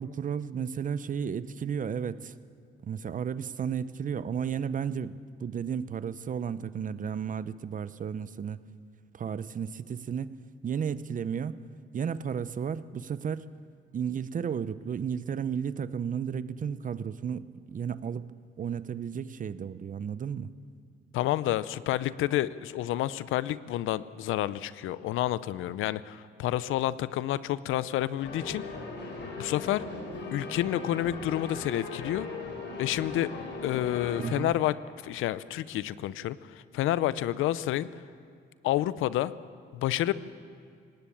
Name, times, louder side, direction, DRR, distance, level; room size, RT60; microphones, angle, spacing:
voice 1, 0.0-2.3 2.8-8.6 9.1-10.3 10.6-11.5 11.9-13.5 13.9-18.3 18.6-20.5 34.2-34.5, right 7 dB, 40° right, 15 dB, 0.7 m, -33 dB
voice 2, 21.1-28.6 29.3-29.8 30.3-32.3 32.8-33.3 33.6-34.7 35.0-37.9 38.6-39.3 39.7-40.1, left 13 dB, 85° left, 17 dB, 0.6 m, -29 dB
sound 1, 28.2-34.4, left 3 dB, 65° left, 4.8 m, -39 dB
18.5 x 17.5 x 8.6 m, 2.2 s
cardioid pair, 90°, 20 cm